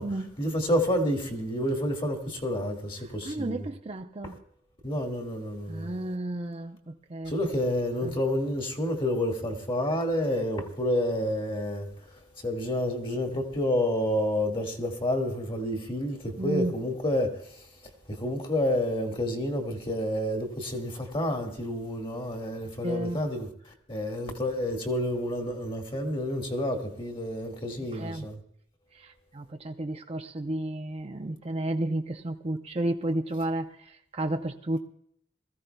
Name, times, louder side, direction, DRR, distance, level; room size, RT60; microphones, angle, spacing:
voice 1, 0.4-3.7 4.2-4.4 4.8-5.9 7.3-17.7 18.1-28.4, left 1 dB, 30° left, 1.9 m, -29 dB
voice 2, 3.2-4.4 5.7-7.3 8.0-8.2 16.4-16.8 22.8-23.2 27.9-28.3 28.9-34.8, right 1 dB, 35° right, 0.6 m, -32 dB
21.0 x 15.0 x 2.3 m
head